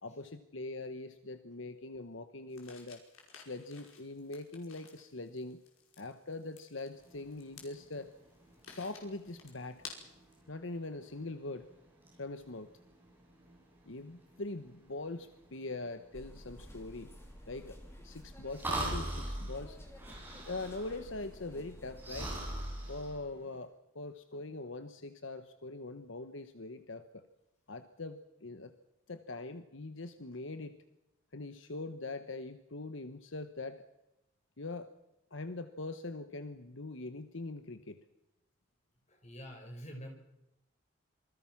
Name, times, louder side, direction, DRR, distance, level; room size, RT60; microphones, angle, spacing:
voice 1, 0.0-3.0 3.3-5.6 6.0-8.1 8.8-9.8 10.5-11.7 12.2-12.7 13.9-17.1 17.5-17.8 18.0-19.8 20.4-22.3 22.9-27.2 27.7-28.7 29.1-30.8 31.3-33.8 34.6-34.9 35.3-38.0, left 2 dB, 70° left, 9 dB, 1.2 m, -42 dB
sound 1, 2.5-10.4, left 6 dB, 85° left, 5.4 m, -54 dB
sound 2, 6.9-23.6, right 1 dB, 10° right, 8.0 m, -44 dB
sound 3, 16.1-22.3, equal, 10° left, 3.1 m, -52 dB
voice 2, 39.1-40.1, equal, 35° left, 4 dB, 5.0 m, -46 dB
27.0 x 21.0 x 6.0 m, 0.92 s
head